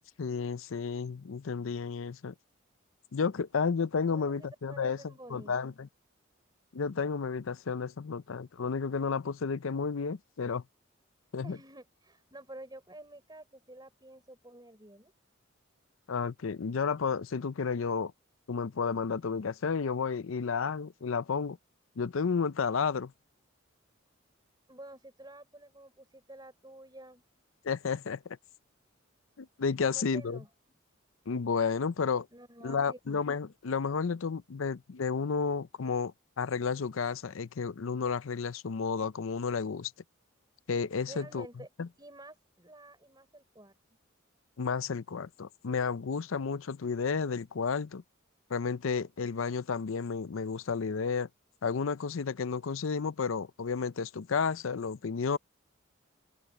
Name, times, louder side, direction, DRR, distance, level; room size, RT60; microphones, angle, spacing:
voice 1, 0.2-2.3 3.1-5.0 5.3-5.9 6.7-10.6 11.3-11.6 16.1-18.1 18.5-21.6 22.0-23.1 27.6-28.4 29.4-30.4 31.3-32.3 32.6-39.9 40.7-41.5 41.8-41.9 44.6-48.0 48.5-51.3 51.6-55.4, left 5 dB, 80° left, 0.5 m, -32 dB
voice 2, 4.1-5.5 11.4-15.1 24.7-27.2 29.8-30.5 32.3-33.2 41.0-41.7 42.0-43.7, right 1 dB, 20° right, 4.5 m, -50 dB
head